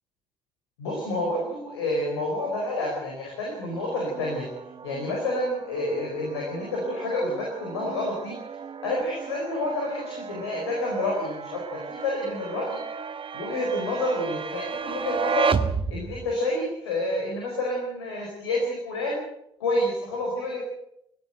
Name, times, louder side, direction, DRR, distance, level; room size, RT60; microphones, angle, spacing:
voice 1, 0.8-4.5 4.8-8.4 8.8-12.8 13.3-15.5 15.9-19.2 19.6-20.6, left 1 dB, 85° left, -2 dB, 4.7 m, -29 dB
sound 1, 3.7-16.3, right 6 dB, 40° right, 1.2 m, -34 dB
21.0 x 15.5 x 7.9 m, 0.77 s
hypercardioid pair, 45°, 13 cm